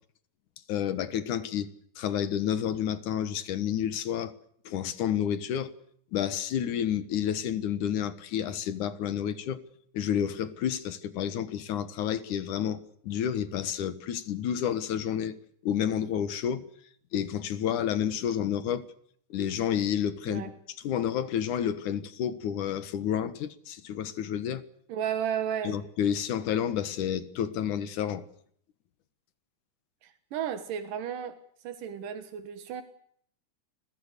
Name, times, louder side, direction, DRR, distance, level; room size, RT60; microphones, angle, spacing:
voice 1, 0.7-1.7 2.0-4.3 4.7-5.7 6.1-9.6 9.9-15.3 15.6-16.7 17.1-18.8 19.3-20.5 20.8-24.6 25.6-28.2, left 9 dB, 70° left, 2.8 m, -30 dB
voice 2, 24.9-25.8 30.0-32.8, right 9 dB, 85° right, 3.1 m, -34 dB
29.0 x 22.0 x 6.7 m
omnidirectional pair, 3.7 m